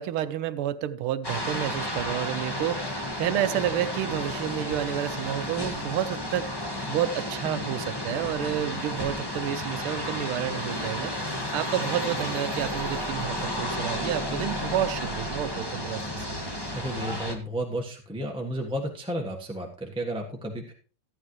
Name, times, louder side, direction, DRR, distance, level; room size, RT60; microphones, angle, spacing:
voice 1, 0.0-11.1 11.5-16.3, right 11 dB, 85° right, 12 dB, 1.5 m, -30 dB
sound 1, 1.2-17.3, left 1 dB, 10° left, 1.5 m, -32 dB
voice 2, 16.7-20.7, right 1 dB, 5° right, 0 dB, 1.1 m, -32 dB
14.5 x 9.2 x 3.2 m, 0.37 s
omnidirectional pair, 2.4 m